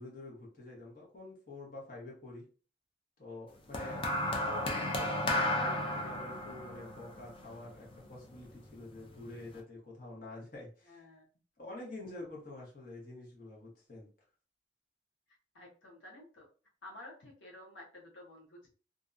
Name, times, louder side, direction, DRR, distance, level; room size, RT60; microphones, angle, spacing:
voice 1, 0.0-2.4 3.2-11.1 11.6-14.1, left 2 dB, 45° left, -3 dB, 1.0 m, -48 dB
sound 1, 3.7-8.2 9.1-9.3, left 1 dB, 30° left, 0.3 m, -33 dB
voice 2, 10.9-11.2 15.5-16.5 16.8-18.7, left 1 dB, 85° left, -2 dB, 0.8 m, -52 dB
2.6 x 2.2 x 2.5 m, 0.39 s
head